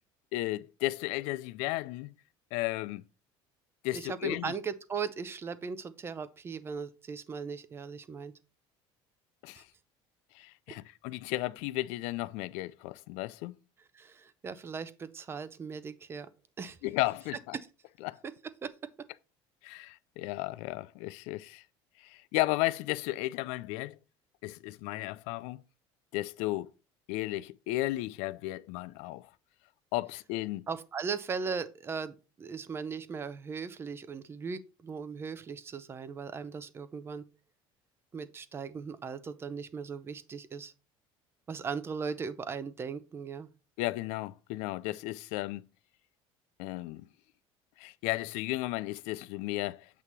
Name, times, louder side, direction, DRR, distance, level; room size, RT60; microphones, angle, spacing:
voice 1, 0.3-2.1 2.5-3.0 3.8-4.5 9.4-9.6 10.4-13.6 16.8-17.6 18.0-18.2 19.6-21.6 22.0-24.0 24.4-25.6 26.1-26.7 27.1-29.3 29.9-30.6 43.8-45.6 46.6-47.1 47.8-49.9, left 18 dB, 75° left, 0.4 m, -34 dB
voice 2, 3.9-8.3 9.5-9.6 13.9-16.3 16.6-16.8 18.2-18.3 18.6-18.7 30.7-37.2 38.1-40.7 41.5-43.5, right 5 dB, 20° right, 0.5 m, -38 dB
8.2 x 2.8 x 6.0 m
cardioid pair, 150°, 11 cm